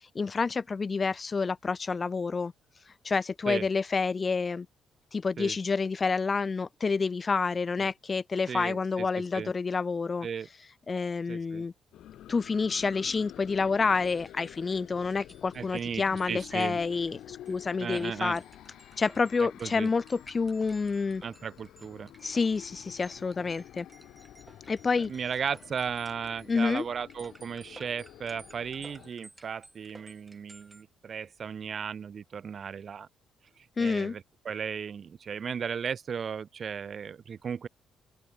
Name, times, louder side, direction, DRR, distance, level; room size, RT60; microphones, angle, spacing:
voice 1, 0.1-2.5 3.0-4.7 5.1-10.3 10.9-11.7 12.3-18.4 19.0-21.2 22.2-23.9 24.7-25.1 26.5-26.8 33.8-34.1, left 4 dB, 35° left, 0.6 m, -28 dB
voice 2, 8.5-9.1 9.3-9.5 10.2-10.5 11.3-11.7 15.5-16.8 17.8-18.4 19.4-19.9 21.2-22.1 25.0-33.1 33.8-37.7, right 7 dB, 50° right, 0.5 m, -36 dB
sound 1, 11.9-29.1, left 12 dB, 80° left, 2.4 m, -49 dB
sound 2, 13.8-30.8, right 2 dB, 15° right, 4.8 m, -56 dB
open air
cardioid pair, 90°, 0 cm